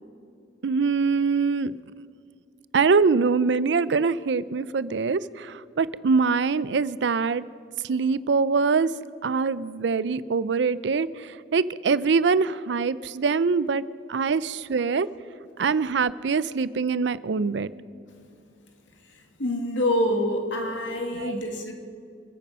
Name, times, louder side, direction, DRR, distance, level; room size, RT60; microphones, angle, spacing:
voice 1, 0.6-1.7 2.7-7.4 7.8-8.9 9.2-13.8 14.1-15.1 15.6-17.7 21.2-21.6, right 5 dB, 65° right, 18 dB, 0.5 m, -24 dB
voice 2, 19.1-21.7, left 1 dB, 85° left, 4 dB, 1.9 m, -26 dB
27.0 x 9.3 x 5.6 m, 2.4 s
head